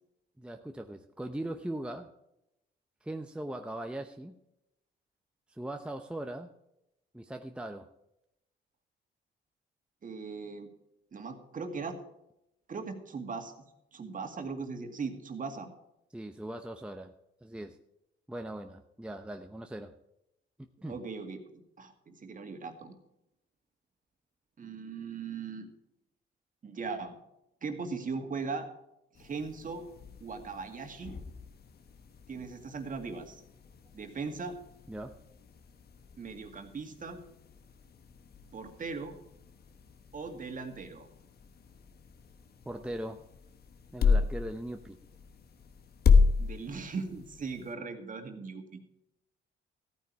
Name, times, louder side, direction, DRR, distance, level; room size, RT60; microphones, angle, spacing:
voice 1, 0.4-2.1 3.0-4.4 5.5-6.5 7.1-7.9 16.1-17.1 17.4-17.8 18.3-19.9 20.8-21.0 34.9-35.1 42.7-43.2 43.9-45.0, right 1 dB, 5° right, 5 dB, 0.8 m, -39 dB
voice 2, 10.0-10.7 11.1-12.0 12.7-13.5 13.9-15.7 20.9-23.0 24.6-25.7 26.6-27.2 27.6-28.7 29.2-29.9 30.2-31.2 32.3-33.4 33.9-34.6 36.2-37.2 38.5-39.2 40.1-41.1 46.4-48.8, right 4 dB, 40° right, 5 dB, 2.2 m, -39 dB
sound 1, 29.1-47.7, left 5 dB, 50° left, 1.2 m, -33 dB
14.5 x 9.4 x 4.6 m, 0.84 s
cardioid pair, 90°, 20 cm